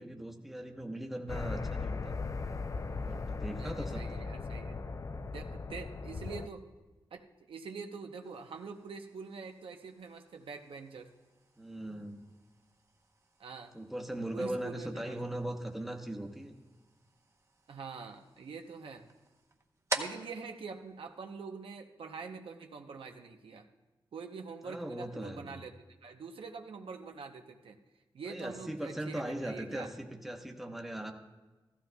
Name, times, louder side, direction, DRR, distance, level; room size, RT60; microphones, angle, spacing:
voice 1, 0.0-2.1 3.0-4.2 11.6-12.2 13.7-16.6 24.6-25.6 28.2-31.1, right 1 dB, ahead, 2 dB, 0.9 m, -39 dB
sound 1, 1.3-6.5, left 4 dB, 35° left, 0.4 m, -38 dB
voice 2, 3.5-4.8 5.2-6.6 7.1-11.1 13.4-13.7 14.3-15.2 17.7-19.1 19.9-23.7 24.1-25.7 26.0-27.8 28.1-29.9, right 5 dB, 85° right, 4 dB, 0.7 m, -45 dB
sound 2, 8.2-21.8, right 3 dB, 30° right, 0.8 m, -47 dB
15.0 x 14.5 x 2.3 m, 1.2 s
wide cardioid pair, 95°, 9 cm